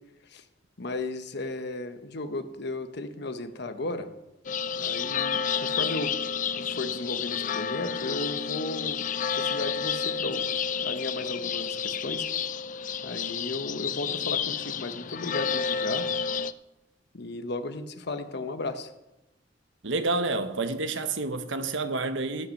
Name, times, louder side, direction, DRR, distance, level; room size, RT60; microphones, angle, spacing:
voice 1, 0.8-4.1 4.8-6.1 6.6-9.0 9.3-10.5 10.8-12.2 13.0-16.1 17.1-18.9, left 2 dB, 60° left, 1.1 m, -35 dB
sound 1, 4.4-16.5, left 7 dB, 45° left, 0.4 m, -30 dB
voice 2, 19.8-22.5, right 3 dB, 85° right, 1.1 m, -29 dB
17.0 x 5.8 x 6.5 m
head